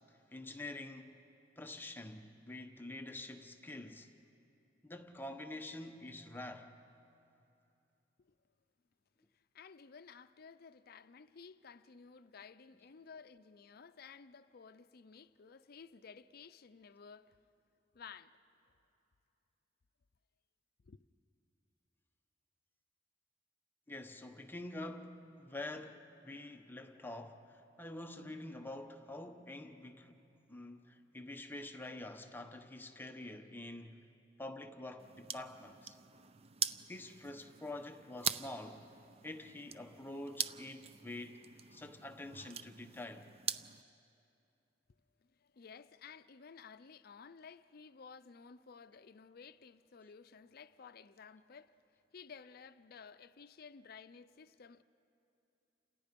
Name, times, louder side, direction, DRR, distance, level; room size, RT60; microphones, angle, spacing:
voice 1, 0.1-1.2 1.6-4.1 4.8-6.7 23.9-30.2 30.5-34.1 34.4-36.0 36.9-38.8 39.2-41.4 41.7-43.3, left 2 dB, 10° left, 1.0 m, -47 dB
voice 2, 9.5-17.4 17.9-18.4 20.8-21.0 45.4-51.7 52.1-54.8, left 6 dB, 55° left, 0.5 m, -55 dB
sound 1, 35.0-43.8, right 8 dB, 35° right, 0.5 m, -43 dB
29.5 x 27.0 x 5.3 m
head